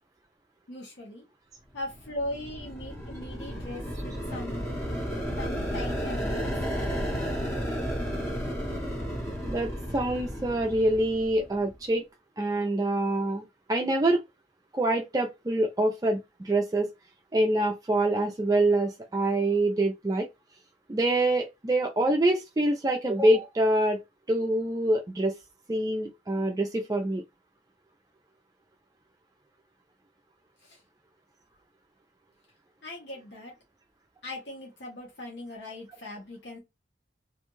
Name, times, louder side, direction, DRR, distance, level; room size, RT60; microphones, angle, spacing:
voice 1, 0.7-1.2 1.7-4.6 5.4-6.4 30.6-30.8 32.8-33.5 34.2-36.6, left 1 dB, 80° left, 0.9 m, -39 dB
sound 1, 1.9-11.7, equal, 15° left, 0.9 m, -33 dB
voice 2, 9.5-12.1 12.4-13.4 13.7-14.2 14.7-16.2 16.4-16.9 17.3-20.3 20.9-24.0 24.3-25.3 25.7-27.2, right 1 dB, 20° right, 0.4 m, -25 dB
2.5 x 2.3 x 3.0 m
head